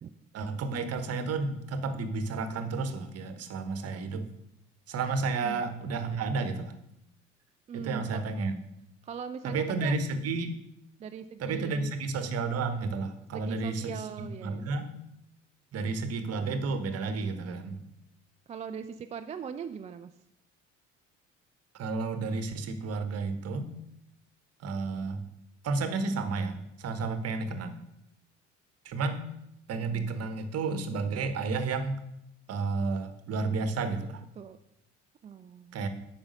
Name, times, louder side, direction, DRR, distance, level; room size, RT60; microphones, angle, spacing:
voice 1, 0.3-4.2 4.9-6.7 7.7-8.6 9.4-10.6 11.4-14.9 15.7-17.8 21.7-23.7 24.6-25.2 25.6-27.8 28.8-29.2 29.7-32.0 32.5-34.2 35.7-35.9, right 4 dB, 40° right, 9 dB, 1.1 m, -31 dB
voice 2, 7.7-8.2 9.0-10.0 11.0-11.9 13.3-14.7 18.5-20.1 27.2-27.3 34.4-34.6 35.2-35.8, right 7 dB, 20° right, 9 dB, 0.3 m, -40 dB
8.7 x 5.9 x 5.2 m, 0.80 s
figure-of-eight pair, 55°, 36 cm